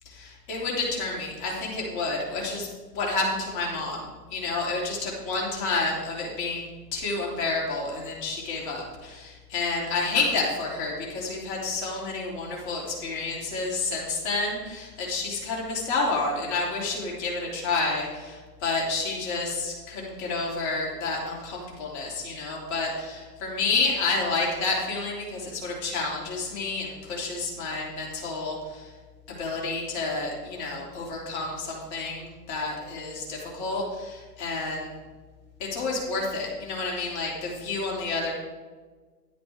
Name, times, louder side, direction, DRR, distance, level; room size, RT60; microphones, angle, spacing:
voice 1, 0.0-2.7 2.9-6.6 6.9-28.9 29.3-35.0 35.6-38.3, left 3 dB, 40° left, -3 dB, 3.3 m, -30 dB
11.5 x 9.9 x 3.6 m, 1.4 s
figure-of-eight pair, 115°, 48 cm